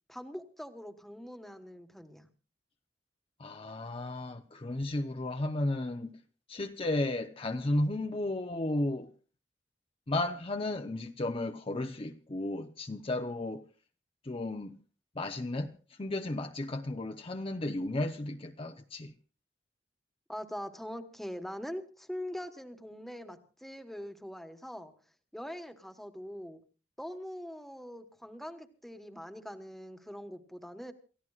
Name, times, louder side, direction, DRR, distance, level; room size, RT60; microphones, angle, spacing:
voice 1, 0.1-2.3 20.3-24.9 25.3-26.6 27.0-30.9, equal, ahead, 1.3 m, -43 dB
voice 2, 3.4-6.1 6.5-9.1 10.1-13.6 14.2-14.8 15.2-19.1, left 2 dB, 30° left, 0.7 m, -34 dB
28.5 x 15.0 x 2.4 m
head